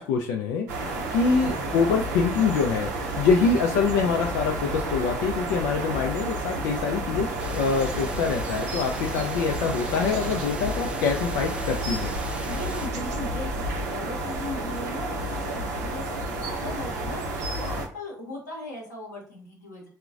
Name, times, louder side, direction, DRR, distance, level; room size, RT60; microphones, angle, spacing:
voice 1, 0.0-0.7 1.1-12.1, left 5 dB, 70° left, 2 dB, 0.4 m, -25 dB
voice 2, 0.6-1.1 12.5-19.9, left 1 dB, 90° left, -1 dB, 0.8 m, -38 dB
sound 1, 0.7-17.9, right 2 dB, 80° right, 0.6 m, -31 dB
sound 2, 7.4-12.9, right 1 dB, 10° right, 0.5 m, -39 dB
3.7 x 2.1 x 2.4 m, 0.43 s
figure-of-eight pair, 50°, 9 cm